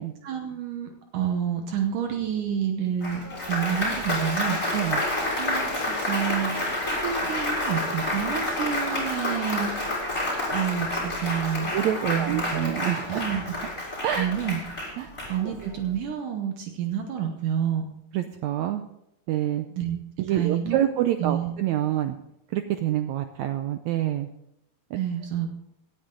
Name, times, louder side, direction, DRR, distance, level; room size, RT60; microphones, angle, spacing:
voice 1, 0.2-4.8 5.4-9.7 10.5-11.7 12.1-12.7 13.1-13.5 14.2-14.6 15.3-17.9 19.7-20.0 20.3-20.9 21.2-21.5 25.0-25.5, right 9 dB, 75° right, 4 dB, 2.5 m, -29 dB
Applause, 3.0-15.7, left 1 dB, 20° left, 4.7 m, -29 dB
voice 2, 4.7-5.0 9.3-9.4 11.7-13.2 14.0-14.3 15.0-15.1 18.1-18.8 19.3-19.7 20.2-22.2 22.5-24.3, right 12 dB, 90° right, 8 dB, 1.6 m, -27 dB
17.5 x 9.8 x 3.8 m, 0.81 s
omnidirectional pair, 3.9 m